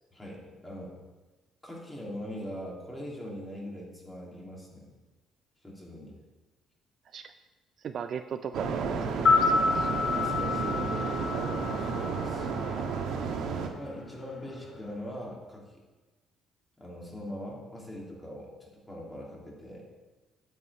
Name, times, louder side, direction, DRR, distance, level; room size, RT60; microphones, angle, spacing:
voice 1, 0.1-0.9 1.6-4.9 5.6-6.2 10.1-12.8 13.7-15.8 16.8-19.8, equal, 10° left, -3 dB, 2.8 m, -41 dB
voice 2, 7.8-9.9, right 7 dB, 50° right, 9 dB, 0.4 m, -37 dB
sound 1, 8.5-13.7, right 5 dB, 75° right, 1.4 m, -32 dB
sound 2, 9.1-13.3 13.5-13.6, left 4 dB, 50° left, 2.0 m, -28 dB
9.5 x 5.4 x 8.2 m, 1.2 s
cardioid pair, 135°, 0 cm